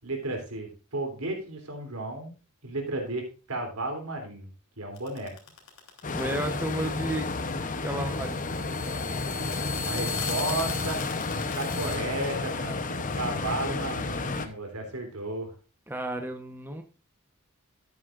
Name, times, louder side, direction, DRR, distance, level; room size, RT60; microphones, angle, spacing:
voice 1, 0.0-2.3 2.6-4.5 4.8-5.3 9.8-11.0 11.3-15.5, right 2 dB, 85° right, 3 dB, 3.4 m, -33 dB
sound 1, 5.0-12.0, left 5 dB, 70° left, 3.1 m, -38 dB
sound 2, 6.0-14.5, left 3 dB, 35° left, 0.9 m, -32 dB
voice 2, 6.1-7.3 7.8-8.4 15.9-16.8, right 1 dB, 10° right, 4 dB, 1.0 m, -32 dB
12.5 x 9.9 x 2.5 m, 0.34 s
head